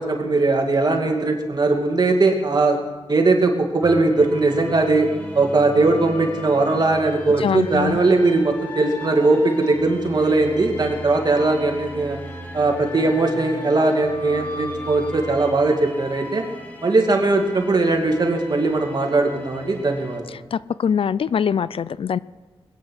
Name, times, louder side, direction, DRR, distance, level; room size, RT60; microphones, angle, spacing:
voice 1, 0.0-2.8 3.1-5.1 5.3-12.2 12.5-16.4 16.8-20.4, right 3 dB, 40° right, 2 dB, 2.5 m, -19 dB
sound 1, 3.8-20.2, equal, 15° left, 2.5 m, -37 dB
voice 2, 7.4-8.0 20.5-22.2, left 7 dB, 65° left, 18 dB, 0.4 m, -23 dB
21.0 x 9.4 x 6.3 m, 1.3 s
wide cardioid pair, 100°, 10 cm